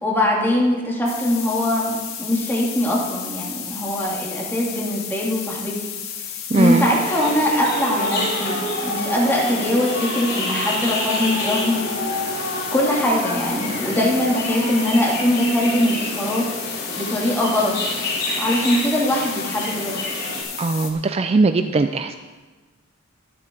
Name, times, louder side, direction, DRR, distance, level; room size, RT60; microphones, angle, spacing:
voice 1, 0.0-1.9 2.2-5.8 6.6-11.8 12.7-17.7 18.4-20.0, left 1 dB, 10° left, -4 dB, 2.6 m, -22 dB
sound 1, 1.1-20.9, left 8 dB, 90° left, 1.7 m, -33 dB
sound 2, 6.5-20.4, left 1 dB, 55° left, 4.3 m, -28 dB
voice 2, 6.5-6.9 20.6-22.2, right 3 dB, 30° right, 8 dB, 0.4 m, -19 dB
22.5 x 7.7 x 3.8 m, 1.3 s
head